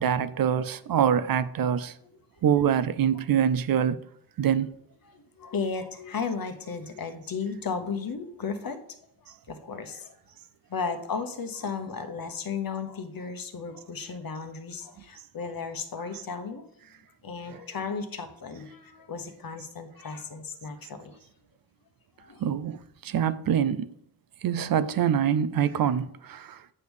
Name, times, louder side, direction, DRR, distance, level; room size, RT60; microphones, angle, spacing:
voice 1, 0.0-1.9 2.4-4.0 4.4-4.8 22.4-23.9 24.4-26.7, right 8 dB, 60° right, 0.5 m, -25 dB
voice 2, 1.7-2.1 5.0-8.8 9.2-10.2 10.7-16.7 17.2-21.2 22.2-22.4, left 5 dB, 55° left, 1.1 m, -35 dB
8.6 x 3.5 x 6.3 m
cardioid pair, 65°, 40 cm